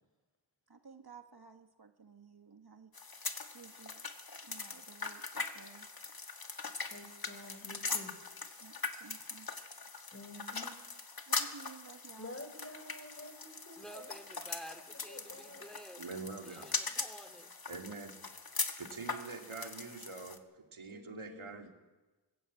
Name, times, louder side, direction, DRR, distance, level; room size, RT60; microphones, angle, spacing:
voice 1, 0.7-2.9 3.5-4.0 4.4-5.9 8.6-9.5 11.3-12.4, right 5 dB, 50° right, 6 dB, 1.6 m, -55 dB
sound 1, 2.9-20.4, left 4 dB, 45° left, 1.8 m, -41 dB
voice 2, 6.8-8.1 10.1-10.7 12.2-14.2 15.1-15.7 20.9-21.7, left 1 dB, 30° left, 6 dB, 4.6 m, -50 dB
voice 3, 13.8-16.0 16.4-17.5 18.9-19.1, right 1 dB, ahead, 5 dB, 2.7 m, -51 dB
voice 4, 16.0-16.7 17.7-18.1 18.8-21.7, right 4 dB, 80° right, 3 dB, 2.4 m, -45 dB
21.5 x 15.5 x 8.5 m, 1.2 s
wide cardioid pair, 55°, 48 cm